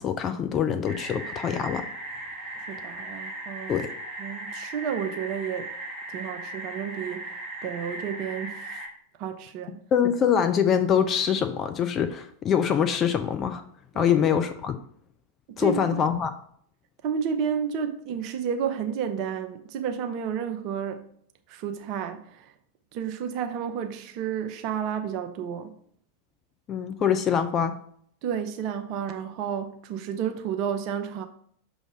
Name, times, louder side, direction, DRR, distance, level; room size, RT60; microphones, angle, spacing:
voice 1, 0.0-1.8 3.7-3.9 9.9-13.6 14.0-14.8 15.6-16.3 26.7-27.8, left 8 dB, 30° left, 0.5 m, -24 dB
sound 1, 0.8-8.9, right 2 dB, 5° left, 1.4 m, -38 dB
voice 2, 2.7-3.8 4.2-5.7 6.1-8.9 9.2-9.8 13.9-14.1 15.5-15.8 17.0-21.1 21.5-22.5 22.9-25.7 28.2-31.2, right 7 dB, 40° right, 0.6 m, -31 dB
6.4 x 3.1 x 4.8 m
figure-of-eight pair, 90°, 0 cm